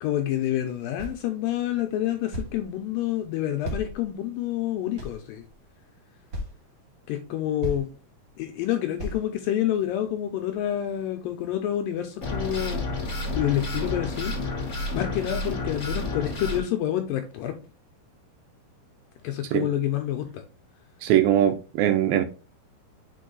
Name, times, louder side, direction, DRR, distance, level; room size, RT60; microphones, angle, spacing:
voice 1, 0.0-5.4 7.1-7.9 8.4-13.0 13.4-14.4 14.9-17.6 19.2-20.4, left 12 dB, 80° left, 2.1 m, -28 dB
sound 1, 1.0-1.2 2.3-2.7 3.6-4.4 5.0-5.6 6.3-6.5 7.2-7.3 7.6-7.9 9.0-9.2, equal, 60° right, 1.3 m, -34 dB
sound 2, 12.2-16.6, left 2 dB, 60° left, 0.8 m, -30 dB
voice 2, 21.0-22.2, right 11 dB, 80° right, 2.2 m, -21 dB
5.4 x 4.6 x 3.9 m
omnidirectional pair, 4.6 m